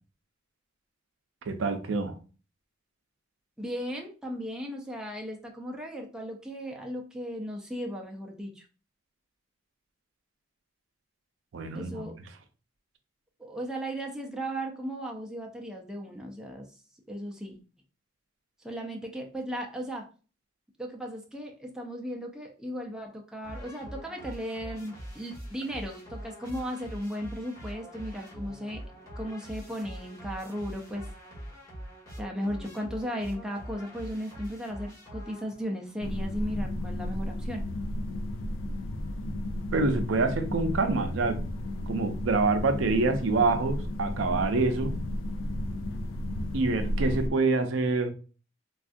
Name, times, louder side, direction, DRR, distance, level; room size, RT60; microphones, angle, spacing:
voice 1, 1.5-2.1 11.5-12.1 39.7-41.4 41.9-44.9 46.5-48.1, right 3 dB, 80° right, 0.4 m, -26 dB
voice 2, 3.6-8.7 11.7-12.1 13.4-16.8 17.1-17.6 18.6-20.1 20.8-28.8 29.2-31.1 32.2-37.7, equal, 5° right, 0.4 m, -36 dB
sound 1, 23.4-35.8, equal, 15° left, 1.0 m, -43 dB
sound 2, 36.0-47.3, left 1 dB, 90° left, 0.4 m, -33 dB
3.4 x 2.3 x 2.5 m
head